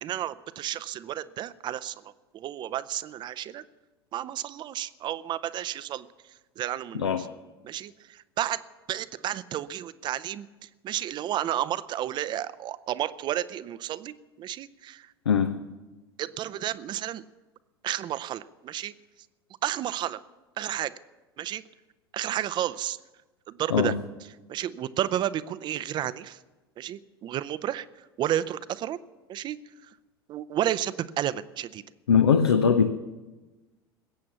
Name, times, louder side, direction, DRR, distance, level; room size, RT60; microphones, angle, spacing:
voice 1, 0.0-1.9 2.3-3.6 4.1-6.1 6.6-7.1 7.6-8.6 8.9-10.5 10.8-15.1 16.2-17.2 17.8-18.9 19.6-20.2 20.6-20.9 21.4-21.6 22.1-23.0 23.5-23.9 24.5-26.4 26.8-27.9 28.2-29.0 29.3-29.6 30.3-31.8, right 12 dB, 35° right, 0.6 m, -31 dB
voice 2, 6.9-7.3 15.3-15.7 23.7-24.1 32.1-32.9, left 6 dB, 75° left, 0.7 m, -21 dB
21.0 x 8.6 x 7.0 m
figure-of-eight pair, 75°, 13 cm